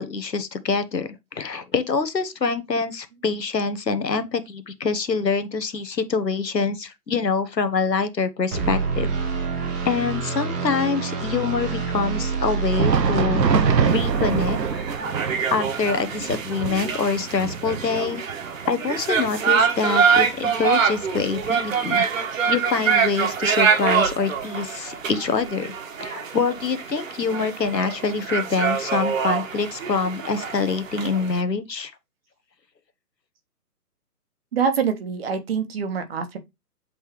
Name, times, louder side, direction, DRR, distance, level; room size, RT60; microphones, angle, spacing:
voice 1, 0.0-9.1 9.8-13.4 13.8-14.9 15.5-18.2 18.7-22.0 22.5-25.7 26.0-31.9, left 5 dB, 85° left, 1.4 m, -25 dB
sound 1, 8.5-15.0, right 5 dB, 10° right, 0.7 m, -27 dB
Thunder, 12.5-22.0 22.3-22.5 23.2-23.4 24.4-24.5, right 6 dB, 85° right, 0.9 m, -27 dB
sound 2, 13.9-31.4, right 6 dB, 55° right, 1.6 m, -25 dB
voice 2, 34.5-36.4, right 6 dB, 35° right, 1.2 m, -25 dB
7.9 x 3.8 x 3.1 m
figure-of-eight pair, 140°, 48 cm